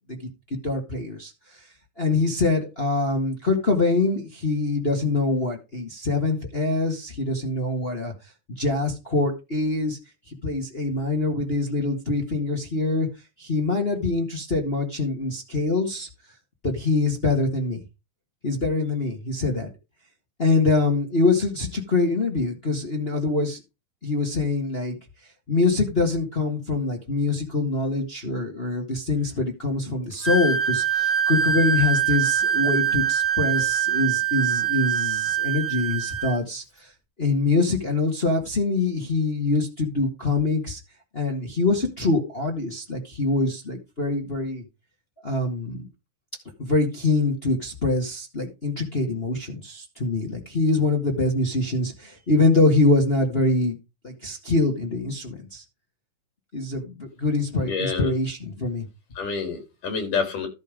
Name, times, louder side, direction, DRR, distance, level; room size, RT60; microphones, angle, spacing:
voice 1, 0.6-1.3 2.0-8.1 8.6-10.0 10.3-13.1 13.4-16.1 16.6-17.8 18.4-19.7 20.4-23.6 24.0-25.0 25.5-36.9 37.2-40.8 41.1-44.6 45.2-45.9 46.6-53.7 54.0-55.6 56.5-58.8, left 3 dB, 25° left, 1.5 m, -24 dB
Wind instrument woodwind instrument, 30.2-36.4, right 8 dB, 10° left, 0.9 m, -23 dB
voice 2, 57.6-58.1 59.2-60.5, left 5 dB, 85° left, 5.4 m, -28 dB
13.0 x 5.4 x 5.2 m
omnidirectional pair, 3.6 m